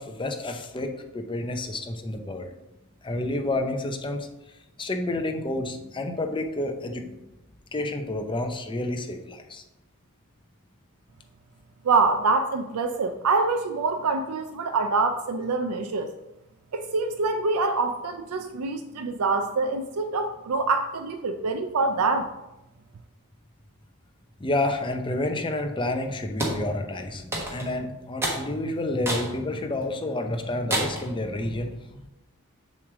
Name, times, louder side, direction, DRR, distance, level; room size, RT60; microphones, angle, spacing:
voice 1, 0.0-2.5 3.0-4.3 4.8-7.2 7.7-9.6 24.4-32.1, left 2 dB, 20° left, 5 dB, 0.6 m, -29 dB
voice 2, 11.8-16.2 16.7-22.3, right 3 dB, 75° right, 7 dB, 0.5 m, -25 dB
sound 1, 26.4-26.6 27.3-27.7 28.2-28.4 29.0-29.3 29.8-29.9 30.7-31.1, right 1 dB, 10° right, 1.3 m, -28 dB
7.1 x 3.2 x 6.0 m, 0.95 s
head